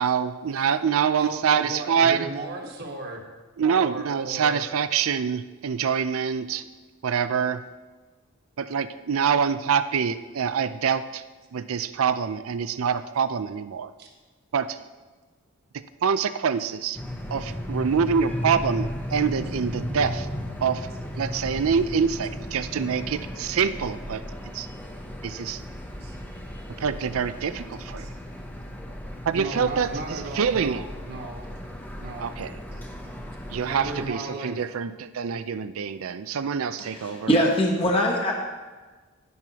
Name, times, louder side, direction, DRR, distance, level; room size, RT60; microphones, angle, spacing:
voice 1, 0.0-2.3 3.6-6.6 7.0-7.6 8.6-11.2 11.5-13.9 14.5-14.8 15.7-17.0 17.3-20.3 20.6-20.9 21.2-24.2 24.5-24.7 25.2-25.6 26.8-28.1 29.3-30.8 32.2-32.5 33.5-37.3, right 6 dB, 75° right, 13 dB, 0.4 m, -25 dB
voice 2, 1.2-3.2 3.6-4.7 14.0-14.1 26.0-26.1 28.0-28.1 29.3-31.4 32.0-32.3 32.7-32.8 33.6-34.6, right 2 dB, 45° right, 1 dB, 1.4 m, -36 dB
sound 1, 16.9-34.1, equal, 10° left, 0.7 m, -35 dB
voice 3, 36.9-38.3, equal, 25° left, -1 dB, 1.0 m, -22 dB
11.0 x 10.5 x 2.9 m, 1.3 s
head